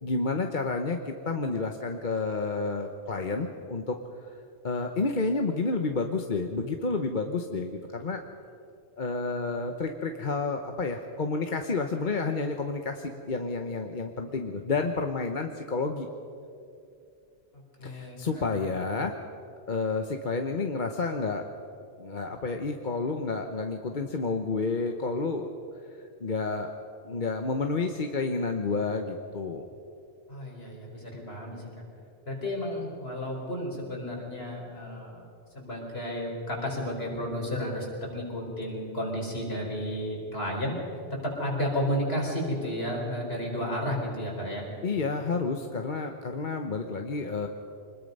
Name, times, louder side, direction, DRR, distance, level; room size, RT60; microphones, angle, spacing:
voice 1, 0.0-4.0 4.6-8.2 9.0-16.1 17.8-19.1 19.7-21.5 22.0-25.5 26.2-26.7 27.0-29.7 44.8-47.5, left 3 dB, 50° left, 5 dB, 1.1 m, -30 dB
voice 2, 17.8-18.7 30.3-31.6 32.3-35.2 35.5-37.9 38.1-40.8 41.2-44.7, equal, 65° left, -1 dB, 4.9 m, -32 dB
25.5 x 20.5 x 5.4 m, 2.5 s
omnidirectional pair, 1.1 m